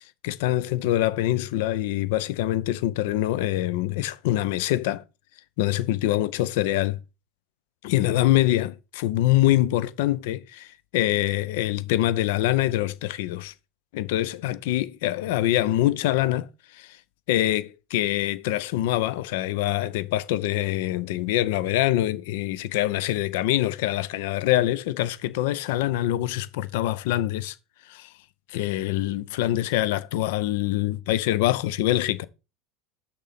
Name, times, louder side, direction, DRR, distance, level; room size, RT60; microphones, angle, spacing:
voice 1, 0.0-5.0 5.6-7.0 7.8-13.5 13.9-16.5 16.7-17.0 17.3-27.6 27.9-28.1 28.5-32.2, left 14 dB, 65° left, 0.5 m, -24 dB
6.3 x 3.7 x 5.7 m
hypercardioid pair, 80°, 0 cm